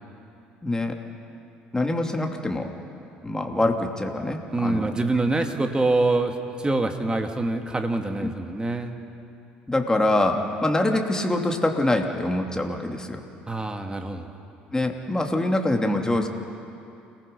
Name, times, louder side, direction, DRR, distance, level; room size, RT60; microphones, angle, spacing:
voice 1, 0.6-0.9 1.7-2.7 3.2-5.0 9.7-13.2 14.7-16.3, left 1 dB, 15° left, 3 dB, 2.9 m, -24 dB
voice 2, 4.5-9.0 13.5-14.3, right 2 dB, 20° right, 5 dB, 2.4 m, -25 dB
29.0 x 19.5 x 5.5 m, 2.6 s
hypercardioid pair, 55°, 5 cm